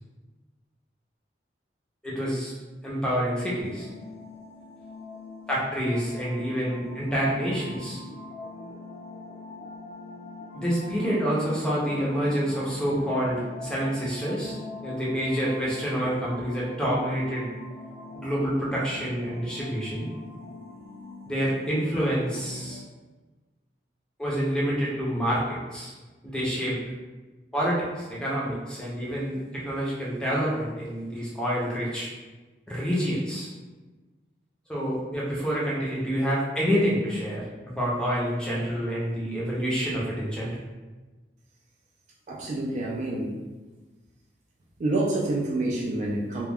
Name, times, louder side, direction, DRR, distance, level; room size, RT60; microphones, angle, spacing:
voice 1, 2.0-2.5 2.8-3.9 5.5-8.0 10.5-14.5 14.8-17.5 18.1-20.1 21.3-22.8 24.2-25.9 26.2-26.8 27.5-32.1 32.7-33.5 34.7-37.4 37.7-40.5, equal, 5° left, -6 dB, 0.6 m, -27 dB
sound 1, 3.6-22.8, left 2 dB, 60° left, 0.6 m, -43 dB
voice 2, 42.3-43.3 44.8-46.5, right 2 dB, 40° right, -3 dB, 0.3 m, -27 dB
2.2 x 2.2 x 3.3 m, 1.3 s
head